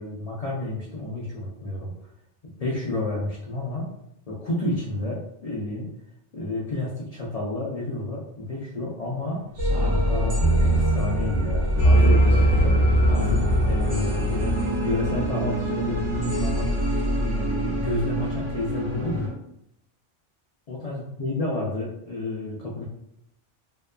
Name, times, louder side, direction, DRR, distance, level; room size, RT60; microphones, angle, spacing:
voice 1, 0.0-1.9 2.4-3.9 4.3-5.9 6.3-9.4 9.8-12.8 13.1-16.8 17.2-19.4 20.7-22.9, left 2 dB, 70° left, -5 dB, 0.3 m, -30 dB
sound 1, 9.6-19.3, right 1 dB, 85° right, 1.2 m, -22 dB
2.8 x 2.2 x 2.3 m, 0.77 s
omnidirectional pair, 1.2 m